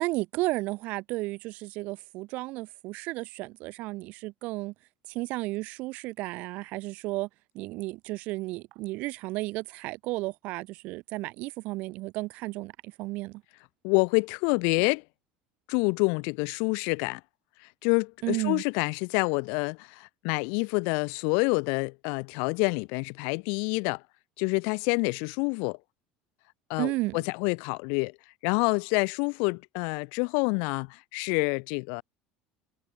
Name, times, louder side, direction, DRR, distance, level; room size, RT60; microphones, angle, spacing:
voice 1, 0.0-4.7 5.1-7.3 7.5-13.4 18.2-18.6 26.8-27.2, right 21 dB, 55° right, 2.9 m, -33 dB
voice 2, 13.8-15.0 15.7-17.2 17.8-24.0 24.4-25.8 26.7-28.1 28.4-32.0, left 39 dB, 70° left, 0.4 m, -27 dB
cardioid pair, 160°, 3 cm